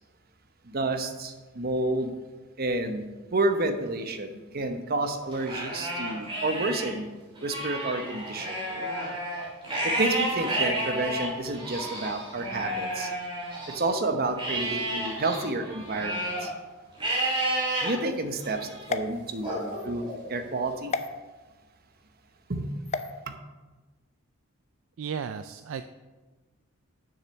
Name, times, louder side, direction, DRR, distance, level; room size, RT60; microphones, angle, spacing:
voice 1, 0.6-2.1 2.6-7.1 7.4-8.6 9.8-13.1 13.7-16.5 17.8-20.9 22.5-22.7 23.3-23.4, right 2 dB, 45° right, 7 dB, 0.9 m, -30 dB
Livestock farm animals working animals, 5.3-6.9 7.3-13.9 14.4-16.5 17.0-17.9 18.4-18.9 19.4-20.5, right 1 dB, 25° right, 3.0 m, -31 dB
sound 1, 18.8-19.9 20.9-21.1 22.8-23.1, left 4 dB, 30° left, 0.4 m, -33 dB
voice 2, 25.0-25.9, right 7 dB, 65° right, 10 dB, 0.4 m, -34 dB
7.2 x 6.7 x 6.3 m, 1.2 s
head